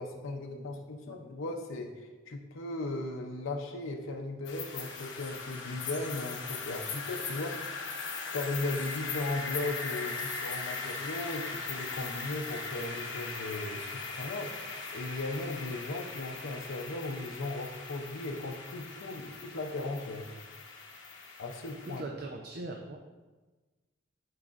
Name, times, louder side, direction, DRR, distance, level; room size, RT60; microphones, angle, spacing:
voice 1, 0.0-7.6 8.3-20.3 21.4-22.0, left 2 dB, 80° left, 1 dB, 0.6 m, -37 dB
sound 1, 4.5-22.0, left 4 dB, 65° left, 1.2 m, -39 dB
voice 2, 21.9-23.0, right 2 dB, 50° right, 2 dB, 0.5 m, -40 dB
11.5 x 4.7 x 2.5 m, 1.3 s
head